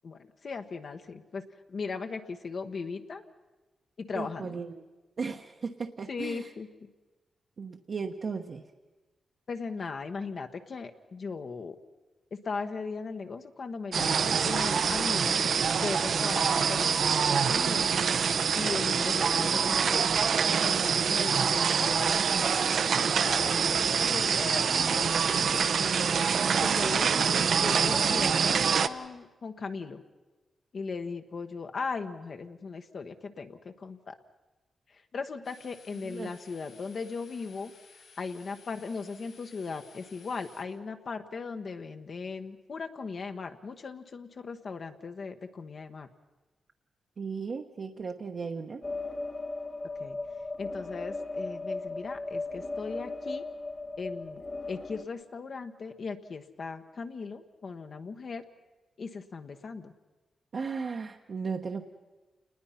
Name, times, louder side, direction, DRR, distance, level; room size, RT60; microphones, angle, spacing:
voice 1, 0.0-1.4 1.7-3.2 4.0-4.6 6.1-6.9 9.5-11.8 12.4-15.4 15.8-17.9 18.5-20.0 20.6-26.1 26.6-30.0 30.7-34.2 34.9-37.7 38.2-46.1 50.0-50.2 50.6-53.4 54.0-54.4 54.7-58.4 59.0-59.9, left 4 dB, 50° left, 6 dB, 1.2 m, -38 dB
voice 2, 4.1-4.9 5.2-6.5 7.6-8.6 36.0-36.3 47.2-48.8 60.5-61.8, right 5 dB, 50° right, 2 dB, 1.1 m, -36 dB
sound 1, 13.9-28.9, right 6 dB, 65° right, 0.8 m, -25 dB
sound 2, 35.4-40.6, left 4 dB, 75° left, 6.7 m, -56 dB
sound 3, 48.8-55.0, left 2 dB, 30° left, 1.6 m, -37 dB
28.5 x 20.0 x 5.8 m, 1.2 s
wide cardioid pair, 115°, 0 cm